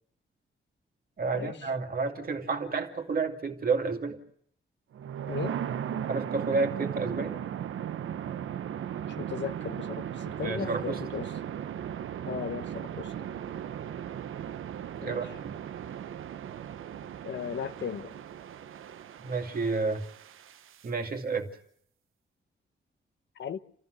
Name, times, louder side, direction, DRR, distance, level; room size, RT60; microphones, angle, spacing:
voice 1, 1.2-4.2 6.1-7.4 10.4-11.0 15.0-15.5 19.2-20.0 20.8-21.5, right 4 dB, 45° right, 2.5 m, -30 dB
sound 1, 4.9-20.9, right 9 dB, 85° right, 1.0 m, -37 dB
voice 2, 9.2-11.3 12.3-13.1 15.0-15.2 17.2-18.2 23.4-23.6, left 8 dB, 60° left, 1.2 m, -36 dB
29.5 x 14.0 x 8.1 m
wide cardioid pair, 135°, 21 cm